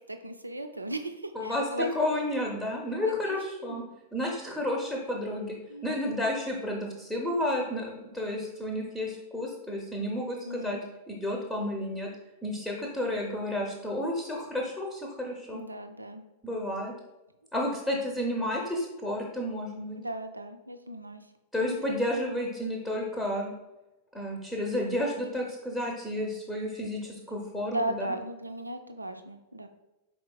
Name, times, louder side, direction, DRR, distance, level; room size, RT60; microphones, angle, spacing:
voice 1, 0.0-2.0 2.9-3.9 5.7-5.9 10.4-10.8 15.5-16.2 17.6-18.0 20.0-21.3 21.6-21.8 27.7-29.7, right 1 dB, 85° right, 7 dB, 0.3 m, -37 dB
voice 2, 1.9-3.8 4.1-5.6 5.8-10.8 11.1-12.1 12.4-15.6 16.4-16.9 17.5-20.0 21.5-23.5 24.1-28.1, left 1 dB, 5° left, -2 dB, 0.7 m, -31 dB
4.7 x 3.7 x 2.3 m, 0.99 s
figure-of-eight pair, 95°, 0 cm